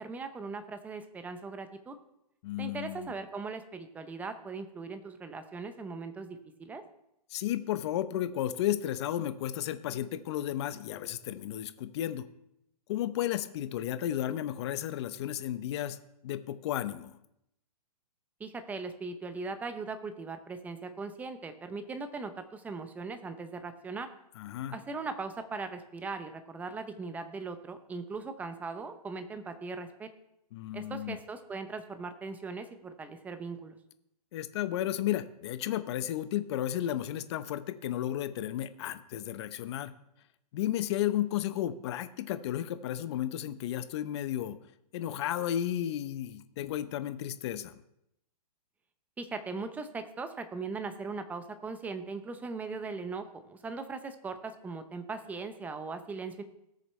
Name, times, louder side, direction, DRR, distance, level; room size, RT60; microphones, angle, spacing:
voice 1, 0.0-1.9 2.6-6.8 18.4-24.1 24.7-30.1 30.7-33.8 49.2-56.4, right 4 dB, 10° right, 9 dB, 0.6 m, -39 dB
voice 2, 2.4-3.1 7.3-12.3 12.9-16.0 16.2-17.2 24.4-24.8 30.5-31.2 34.3-39.9 40.5-44.6 44.9-47.8, left 12 dB, 45° left, 12 dB, 0.7 m, -33 dB
18.0 x 6.7 x 3.2 m, 0.80 s
hypercardioid pair, 145°, 20 cm